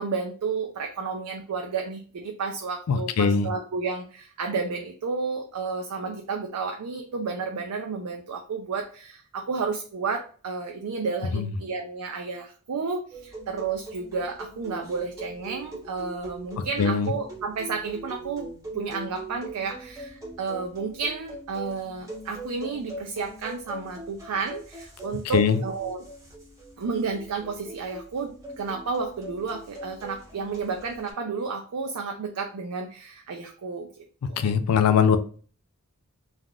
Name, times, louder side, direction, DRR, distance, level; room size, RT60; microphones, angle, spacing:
voice 1, 0.0-26.0 26.8-33.9 34.3-34.5, right 4 dB, 85° right, 0.4 m, -32 dB
voice 2, 2.9-3.5 11.3-11.4 16.8-17.1 25.3-25.6 34.4-35.2, left 6 dB, 80° left, 0.4 m, -21 dB
sound 1, 13.1-31.1, right 1 dB, 15° right, 0.9 m, -41 dB
3.4 x 2.4 x 2.3 m
head